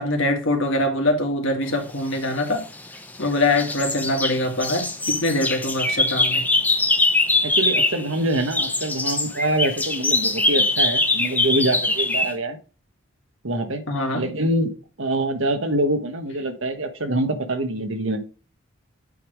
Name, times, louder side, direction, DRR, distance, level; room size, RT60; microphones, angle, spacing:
voice 1, 0.0-2.6 3.2-6.4 13.9-14.3, left 1 dB, 65° left, 1.9 m, -23 dB
sound 1, 2.4-3.2 3.6-8.1 8.3-12.3, left 2 dB, 10° left, 0.6 m, -22 dB
voice 2, 7.4-12.6 13.4-13.8 14.1-14.7 15.0-18.2, right 1 dB, 65° right, 1.2 m, -25 dB
8.5 x 3.6 x 4.7 m
head